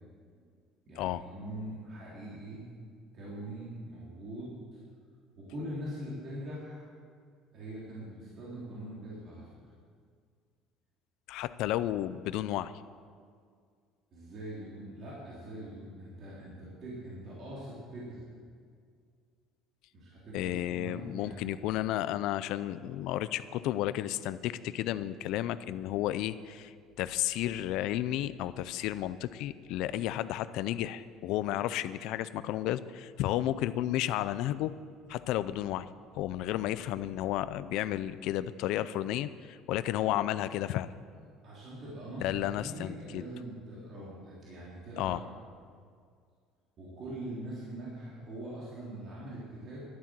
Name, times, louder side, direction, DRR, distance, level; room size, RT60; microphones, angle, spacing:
voice 1, 0.9-2.6 3.1-4.8 5.4-6.9 7.5-9.5 14.1-18.2 19.9-21.5 41.4-45.2 46.8-49.8, right 1 dB, 35° right, -7 dB, 3.3 m, -42 dB
voice 2, 11.3-12.7 20.3-34.7 35.1-35.9 36.1-40.9 42.2-43.2 45.0-45.2, left 13 dB, 60° left, 14 dB, 0.5 m, -32 dB
12.0 x 11.0 x 7.6 m, 2.1 s
cardioid pair, 170°, 0 cm